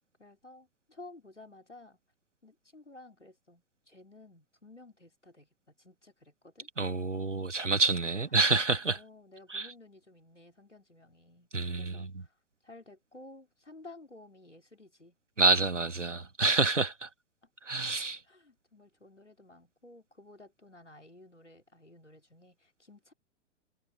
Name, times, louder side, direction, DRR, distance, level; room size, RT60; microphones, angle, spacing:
voice 1, 0.2-2.0 2.4-6.7 7.9-8.3 8.9-12.3 12.6-15.5 18.2-23.1, left 2 dB, 90° left, 4.0 m, -54 dB
voice 2, 6.8-9.0 9.5-9.7 11.5-12.1 15.4-17.1 17.6-18.2, right 3 dB, 90° right, 1.4 m, -27 dB
figure-of-eight pair, 105°, 35 cm